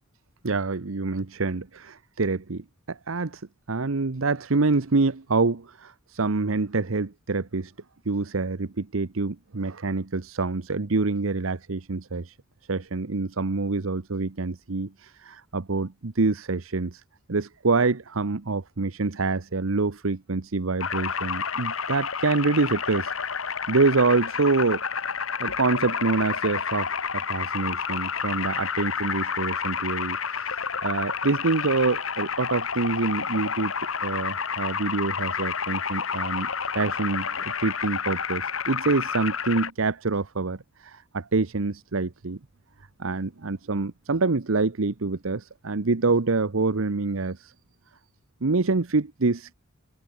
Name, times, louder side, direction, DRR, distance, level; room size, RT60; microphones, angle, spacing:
voice 1, 0.4-3.4 3.7-7.7 8.1-12.4 12.7-17.0 17.3-23.1 23.7-24.8 25.4-33.7 34.0-36.5 36.7-42.4 43.0-47.5 48.4-49.5, right 3 dB, 85° right, 0.9 m, -26 dB
sound 1, 20.8-39.7, left 6 dB, 90° left, 2.1 m, -30 dB
head